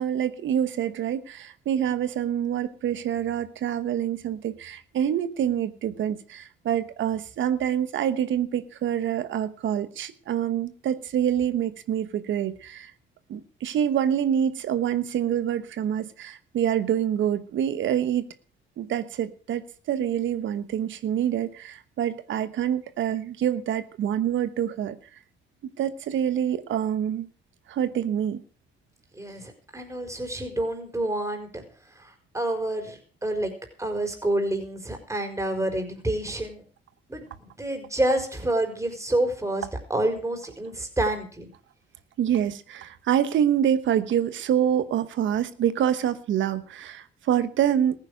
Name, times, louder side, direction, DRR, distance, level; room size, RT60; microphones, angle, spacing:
voice 1, 0.0-12.9 13.3-18.3 18.8-19.6 19.9-25.0 25.8-27.3 27.7-28.4 42.2-48.0, right 9 dB, 75° right, 13 dB, 1.1 m, -26 dB
voice 2, 29.1-31.6 32.3-33.5 33.8-36.6 37.1-39.6 39.9-41.5, right 1 dB, 15° right, 5 dB, 4.6 m, -28 dB
15.0 x 9.8 x 6.5 m, 0.41 s
cardioid pair, 90°, 20 cm